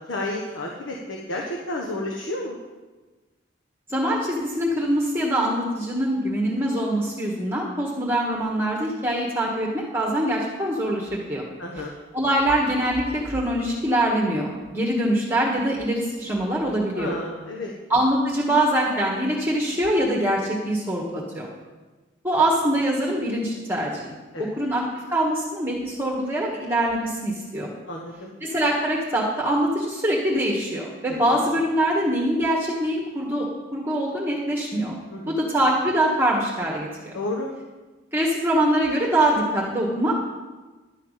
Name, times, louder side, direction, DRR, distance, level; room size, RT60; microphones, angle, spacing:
voice 1, 0.1-2.6 11.6-11.9 16.9-17.7 24.3-24.4 27.9-28.3 31.1-31.4 35.1-35.4 37.1-37.5, left 1 dB, 85° left, -1 dB, 1.3 m, -31 dB
voice 2, 3.9-11.4 11.8-11.9 12.1-17.2 17.9-21.5 22.2-24.8 25.1-27.7 28.4-35.0 35.3-37.1 38.1-40.1, right 1 dB, 10° right, -3 dB, 1.4 m, -24 dB
11.5 x 5.7 x 8.2 m, 1.3 s
head